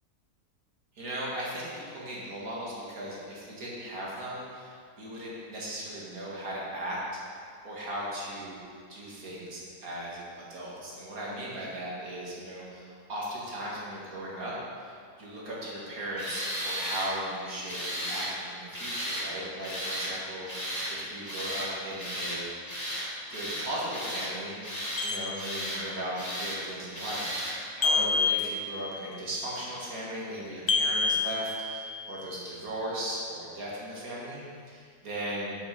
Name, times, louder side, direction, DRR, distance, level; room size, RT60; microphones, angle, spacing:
voice 1, 1.0-7.0 7.6-8.6 8.9-14.5 14.8-14.9 15.2-22.4 23.3-35.6, right 1 dB, 85° right, -6 dB, 2.4 m, -37 dB
Tools, 16.2-17.1 17.7-18.3 18.7-19.3 19.6-20.1 20.5-20.9 21.3-21.7 22.0-22.4 22.7-23.1 23.3-24.3 24.6-25.0 25.4-25.8 26.2-26.6 26.9-27.6, equal, 10° left, 2.3 m, -34 dB
sound 1, 25.0-26.0 27.8-29.1 30.7-32.2, left 4 dB, 45° left, 0.5 m, -29 dB
9.6 x 6.5 x 5.2 m, 2.2 s
omnidirectional pair, 1.5 m